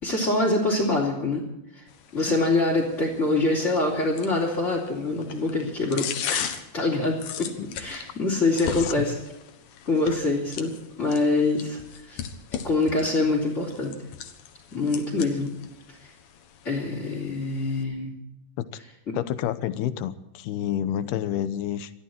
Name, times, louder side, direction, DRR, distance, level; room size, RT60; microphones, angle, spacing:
voice 1, 0.0-1.4 1.7-1.8 2.1-7.5 7.8-9.2 9.8-10.7 11.0-11.8 12.1-12.2 12.6-13.9 14.7-15.5 16.0-16.1 16.6-18.1 19.1-19.2, left 2 dB, 20° left, -5 dB, 3.4 m, -25 dB
sound 1, 1.9-17.8, left 8 dB, 70° left, 3.0 m, -38 dB
voice 2, 19.1-21.9, left 11 dB, 85° left, 13 dB, 2.9 m, -29 dB
22.5 x 14.0 x 4.5 m, 0.87 s
omnidirectional pair, 4.5 m